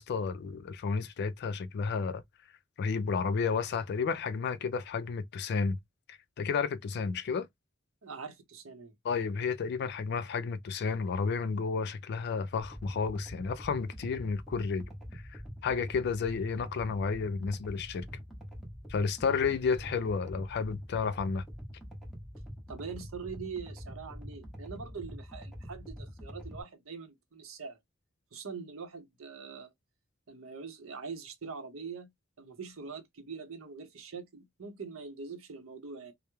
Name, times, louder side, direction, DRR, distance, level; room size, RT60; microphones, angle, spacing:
voice 1, 0.0-2.2 2.8-5.8 6.1-7.5 9.0-14.9 15.1-15.2 15.6-18.1 18.9-21.4, left 5 dB, 55° left, 0.3 m, -31 dB
voice 2, 8.0-8.9 22.7-27.8 28.3-29.7 30.3-32.1 32.4-36.1, right 5 dB, 70° right, 0.7 m, -43 dB
sound 1, 12.6-26.6, equal, ahead, 0.7 m, -45 dB
2.2 x 2.0 x 2.9 m
head